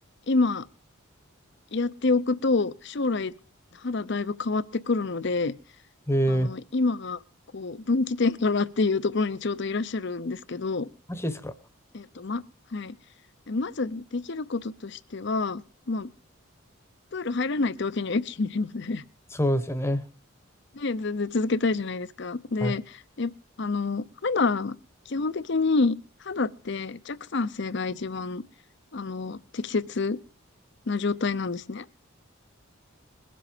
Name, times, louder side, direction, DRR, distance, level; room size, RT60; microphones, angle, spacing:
voice 1, 0.3-0.7 1.7-3.3 3.8-5.5 6.3-7.2 7.5-10.9 11.9-12.4 12.7-12.9 13.5-15.6 15.9-16.1 17.1-19.0 20.7-23.3 23.6-24.7 25.1-26.0 26.2-28.4 28.9-30.2 30.9-31.8, left 3 dB, 55° left, 16 dB, 0.7 m, -27 dB
voice 2, 6.1-6.5 11.1-11.5 19.3-20.0 22.6-22.7, equal, 10° left, 11 dB, 1.0 m, -25 dB
21.5 x 7.7 x 5.1 m, 0.37 s
head